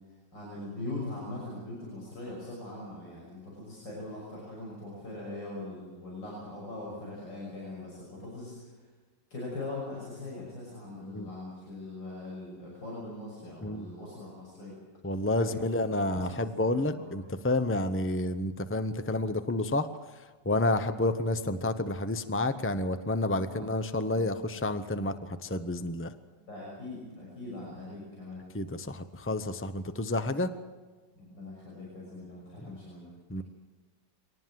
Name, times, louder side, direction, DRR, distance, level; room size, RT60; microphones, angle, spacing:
voice 1, 0.3-8.7 9.3-14.8 15.5-15.6 16.1-16.5 16.9-17.1 23.4-23.7 26.4-28.4 31.2-33.1, left 2 dB, 85° left, -4 dB, 7.1 m, -41 dB
voice 2, 15.0-19.9 20.5-26.1 28.5-30.5 33.3-33.4, left 2 dB, 15° left, 10 dB, 0.4 m, -30 dB
23.5 x 19.0 x 7.6 m, 1.4 s
omnidirectional pair, 1.9 m